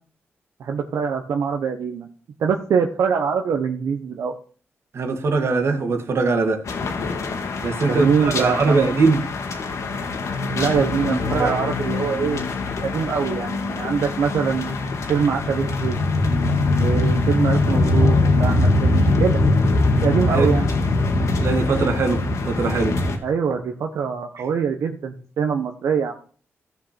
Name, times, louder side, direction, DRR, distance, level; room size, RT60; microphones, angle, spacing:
voice 1, 0.6-2.1 2.4-4.3 7.9-8.9 10.5-12.4 12.8-16.0 16.8-19.4 20.0-20.7 23.2-26.1, right 6 dB, 85° right, 1.2 m, -23 dB
voice 2, 4.9-6.7 7.6-9.3 11.4-11.6 20.3-20.5 21.4-23.0, right 4 dB, 60° right, 2.0 m, -21 dB
sound 1, 6.7-23.2, left 2 dB, 80° left, 2.4 m, -22 dB
15.5 x 5.9 x 4.4 m
cardioid pair, 80°, 5 cm